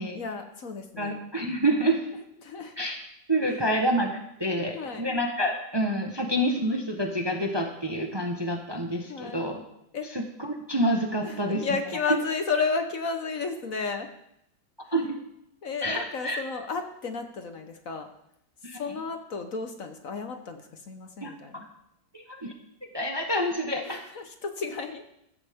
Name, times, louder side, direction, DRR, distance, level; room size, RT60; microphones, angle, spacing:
voice 1, 0.0-1.2 2.1-2.7 4.5-5.1 9.1-9.4 9.9-10.1 11.2-14.1 15.6-18.1 18.7-21.7 23.8-25.0, left 4 dB, 55° left, 6 dB, 1.4 m, -33 dB
voice 2, 1.0-2.0 2.8-3.0 3.3-9.6 10.1-11.7 12.1-12.2 14.9-15.1 15.8-16.4 18.6-18.8 21.2-21.6 22.1-22.5 22.9-24.0, right 1 dB, 15° right, 3 dB, 1.0 m, -28 dB
14.5 x 14.0 x 3.6 m, 0.78 s
omnidirectional pair, 1.9 m